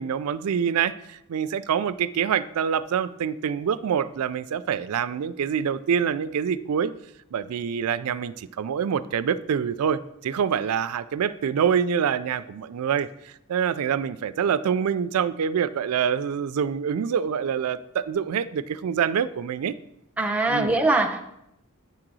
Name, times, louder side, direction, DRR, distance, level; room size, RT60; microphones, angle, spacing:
voice 1, 0.0-6.9 7.3-19.8 20.5-20.8, right 7 dB, 85° right, 15 dB, 0.4 m, -26 dB
voice 2, 20.2-21.2, right 2 dB, 5° right, 3 dB, 0.7 m, -22 dB
9.4 x 3.8 x 6.1 m, 0.82 s
head